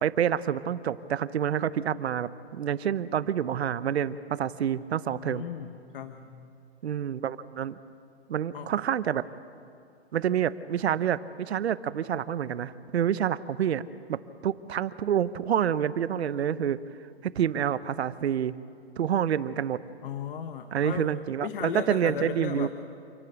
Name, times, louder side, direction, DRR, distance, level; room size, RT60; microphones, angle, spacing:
voice 1, 0.0-5.4 6.8-7.8 8.3-9.2 10.1-13.8 14.1-16.8 17.2-18.5 19.0-19.8 20.7-22.7, right 9 dB, 75° right, 15 dB, 0.9 m, -28 dB
voice 2, 5.1-5.7 5.9-6.5 8.5-8.7 20.0-21.1 21.4-22.7, left 8 dB, 55° left, 9 dB, 1.1 m, -35 dB
28.0 x 11.0 x 8.7 m, 2.5 s
hypercardioid pair, 155°, 32 cm